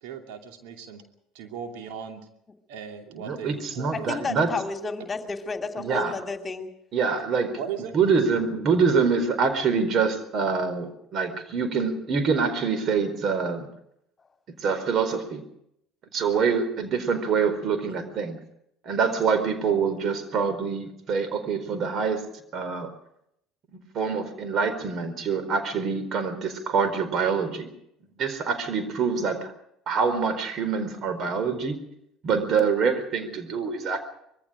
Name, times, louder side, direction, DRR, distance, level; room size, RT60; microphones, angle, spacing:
voice 1, 0.0-1.0 1.3-2.3 2.7-4.3 7.6-7.9, right 7 dB, 65° right, 4 dB, 2.7 m, -37 dB
voice 2, 3.1-4.5 5.8-6.1 6.9-7.6 7.9-13.7 14.6-15.4 16.1-18.4 18.8-22.2 22.5-22.9 23.9-27.7 28.2-29.5 29.9-31.8 32.2-34.0, right 5 dB, 45° right, 11 dB, 4.4 m, -25 dB
voice 3, 3.9-6.7, left 4 dB, 25° left, 6 dB, 2.7 m, -31 dB
25.5 x 22.5 x 5.1 m, 0.76 s
figure-of-eight pair, 65°, 0 cm